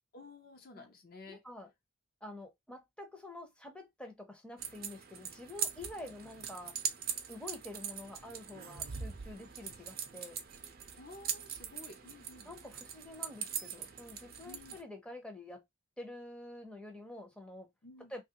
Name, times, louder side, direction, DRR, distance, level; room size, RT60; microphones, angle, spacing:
voice 1, 0.1-1.4 11.0-12.5 14.4-14.8 17.8-18.1, left 3 dB, 45° left, 0.6 m, -52 dB
voice 2, 1.3-1.7 2.2-6.8 7.3-10.4 12.5-15.6 16.0-17.7 18.1-18.2, left 1 dB, 5° left, 0.6 m, -48 dB
sound 1, 4.6-14.8, right 7 dB, 45° right, 0.5 m, -42 dB
3.1 x 2.4 x 2.8 m
head